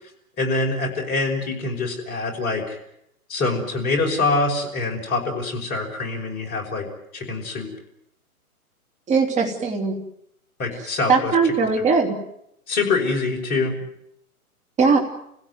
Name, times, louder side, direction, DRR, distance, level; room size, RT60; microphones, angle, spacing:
voice 1, 0.4-2.8 3.3-6.9 7.1-7.7 10.6-11.3 11.8-11.9 12.7-13.7, left 3 dB, 20° left, 0 dB, 5.6 m, -24 dB
voice 2, 9.1-10.0 11.1-12.1 14.8-15.0, right 4 dB, 15° right, 2 dB, 3.2 m, -19 dB
29.5 x 17.0 x 9.5 m, 0.79 s
hypercardioid pair, 140°, 44 cm